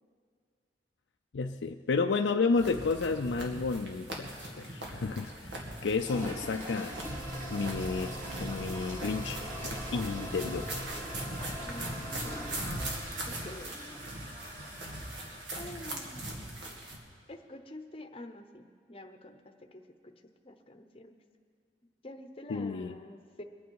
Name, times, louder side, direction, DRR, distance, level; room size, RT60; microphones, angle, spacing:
voice 1, 1.3-7.0 7.5-11.0 22.5-23.0, left 4 dB, 85° left, 4 dB, 0.5 m, -32 dB
sound 1, 2.6-17.0, right 1 dB, 80° right, 2.1 m, -41 dB
sound 2, 6.0-15.7, right 1 dB, 45° right, 2.7 m, -43 dB
sound 3, 6.9-13.0, equal, 10° right, 2.9 m, -42 dB
voice 2, 11.6-12.9 13.3-13.8 15.6-16.3 17.3-19.8 20.4-21.1 22.0-23.4, left 1 dB, 30° left, 6 dB, 0.8 m, -47 dB
23.0 x 9.4 x 4.7 m, 2.2 s
head